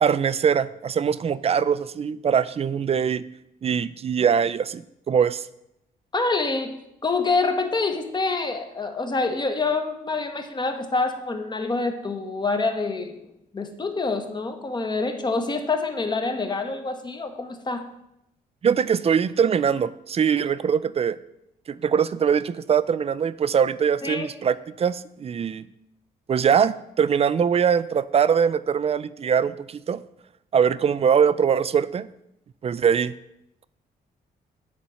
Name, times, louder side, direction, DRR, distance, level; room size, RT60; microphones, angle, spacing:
voice 1, 0.0-3.2 3.6-4.8 5.1-5.4 18.6-21.2 21.7-25.7 26.3-30.0 30.5-32.1 32.6-33.1, right 7 dB, 40° right, 16 dB, 0.4 m, -22 dB
voice 2, 6.1-6.7 7.0-13.3 13.5-17.9 24.0-24.3, left 3 dB, 25° left, 6 dB, 1.1 m, -26 dB
8.4 x 4.2 x 6.3 m, 0.82 s
cardioid pair, 85°, 16 cm